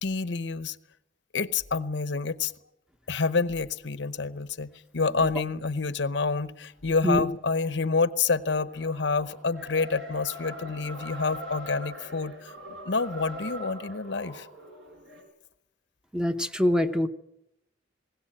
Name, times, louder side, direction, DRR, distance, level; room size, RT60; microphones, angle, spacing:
voice 1, 0.0-0.8 1.3-2.5 3.1-12.5 12.9-14.5, left 4 dB, 65° left, 0.8 m, -28 dB
sound 1, 7.5-7.8 8.2-15.2, equal, 75° right, 5.8 m, -42 dB
voice 2, 16.1-17.1, equal, 5° right, 0.8 m, -24 dB
20.5 x 17.5 x 8.8 m
head